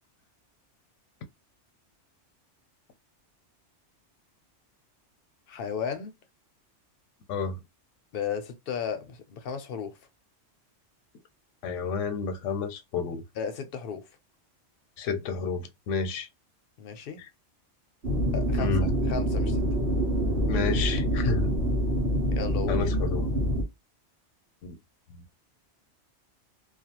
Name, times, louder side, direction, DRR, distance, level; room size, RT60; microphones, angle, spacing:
voice 1, 5.5-6.2 8.1-10.0 13.3-14.1 16.8-17.2 18.3-18.8 19.1-19.6 22.3-22.8, left 7 dB, 60° left, 0.7 m, -34 dB
voice 2, 7.3-7.6 11.6-13.2 15.0-16.3 18.6-18.9 20.5-21.5 22.7-23.3 24.6-24.7 25.1-25.2, left 5 dB, 90° left, 0.9 m, -30 dB
sound 1, 18.0-23.6, equal, 70° right, 1.1 m, -26 dB
2.4 x 2.3 x 2.8 m
omnidirectional pair, 1.2 m